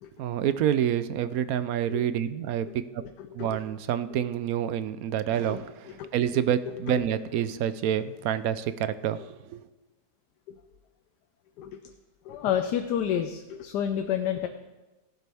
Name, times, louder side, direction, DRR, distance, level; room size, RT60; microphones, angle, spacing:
voice 1, 0.2-3.0 3.3-9.6, right 10 dB, 70° right, 13 dB, 0.9 m, -28 dB
voice 2, 3.0-3.6 5.5-5.6 5.9-7.0 10.5-10.6 11.6-11.8 12.2-14.5, left 9 dB, 80° left, 7 dB, 1.3 m, -31 dB
16.0 x 11.0 x 3.5 m, 1.1 s
omnidirectional pair, 1.8 m